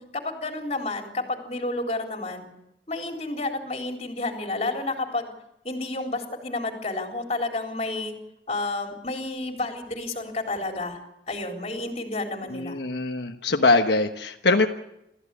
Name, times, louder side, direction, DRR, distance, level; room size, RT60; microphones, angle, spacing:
voice 1, 0.0-2.5 2.9-5.3 5.6-8.2 8.5-11.0 11.3-12.8, left 2 dB, 35° left, 2 dB, 3.9 m, -30 dB
voice 2, 12.5-14.7, left 3 dB, 80° left, 3 dB, 1.2 m, -22 dB
28.0 x 15.0 x 8.5 m, 0.86 s
head